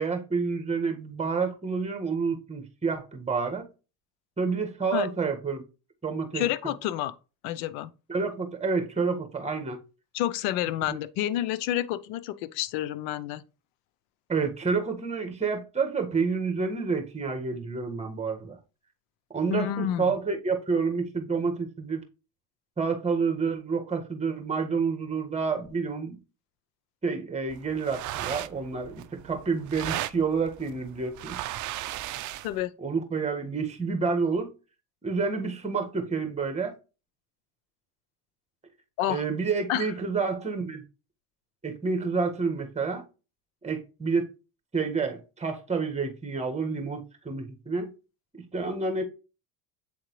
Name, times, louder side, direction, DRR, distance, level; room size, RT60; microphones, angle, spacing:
voice 1, 0.0-3.7 4.4-5.6 6.0-6.7 8.1-9.8 10.9-11.0 14.3-18.6 19.3-22.0 22.8-26.2 27.0-31.4 32.8-34.5 35.0-36.8 39.1-40.8 41.6-43.0 43.6-44.3 44.7-47.9 48.5-49.0, right 4 dB, 15° right, 1.6 m, -29 dB
voice 2, 6.3-7.1 7.4-7.9 10.1-13.4 19.5-20.1 32.4-32.7 39.0-39.2 39.7-39.9, left 12 dB, 80° left, 0.7 m, -29 dB
sound 1, 27.5-32.6, right 14 dB, 50° right, 0.5 m, -36 dB
8.1 x 3.7 x 3.1 m
supercardioid pair, 100°, 41 cm